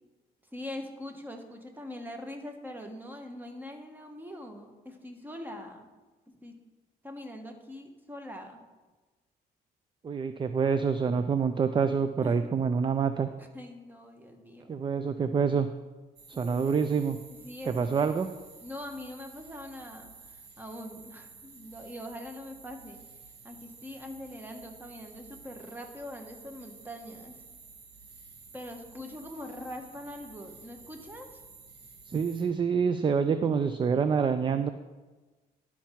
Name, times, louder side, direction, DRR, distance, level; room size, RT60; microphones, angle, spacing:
voice 1, 0.5-5.9 6.3-6.6 7.0-8.6 12.2-12.4 13.4-14.7 16.3-16.8 17.3-18.1 18.6-23.0 23.4-27.4 28.5-31.4, left 1 dB, 10° right, 4 dB, 1.3 m, -43 dB
voice 2, 10.0-13.3 14.7-15.7 16.3-17.2 17.7-18.3 32.1-34.7, right 6 dB, 30° right, 10 dB, 0.4 m, -27 dB
sound 1, 16.2-32.4, right 4 dB, 85° right, 1.8 m, -52 dB
11.5 x 5.8 x 4.5 m, 1.2 s
cardioid pair, 105°, 17 cm